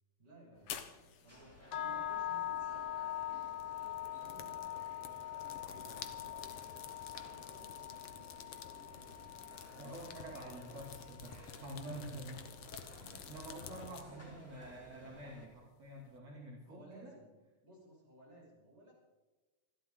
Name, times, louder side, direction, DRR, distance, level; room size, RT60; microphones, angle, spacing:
voice 1, 0.2-9.4 13.6-14.2 16.6-17.3 17.6-18.9, right 1 dB, 20° right, -4 dB, 6.7 m, -60 dB
sound 1, 0.6-14.0, left 8 dB, 60° left, 1.6 m, -51 dB
sound 2, 1.3-15.5, equal, 5° left, 3.0 m, -57 dB
sound 3, 1.7-11.8, left 12 dB, 80° left, 2.5 m, -43 dB
voice 2, 9.8-12.5 12.9-17.1, right 1 dB, 60° right, -4 dB, 3.6 m, -48 dB
28.0 x 12.0 x 3.8 m, 1.2 s
omnidirectional pair, 3.4 m